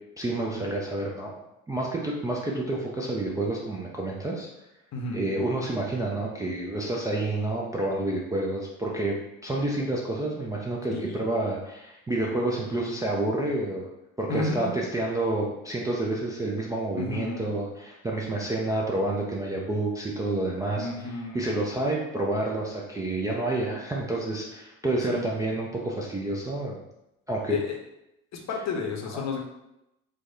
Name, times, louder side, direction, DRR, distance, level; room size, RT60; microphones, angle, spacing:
voice 1, 0.2-1.3 1.7-4.5 5.1-9.2 9.4-13.9 14.2-26.8 27.3-27.6 29.1-29.2, right 2 dB, 10° right, -4 dB, 0.4 m, -29 dB
voice 2, 4.9-5.2 10.9-11.2 14.3-14.7 17.0-17.5 20.8-21.5 25.1-25.3 27.5-27.8 28.3-29.4, left 3 dB, 40° left, 1 dB, 0.8 m, -32 dB
4.6 x 2.1 x 2.6 m, 0.88 s
figure-of-eight pair, 60°, 41 cm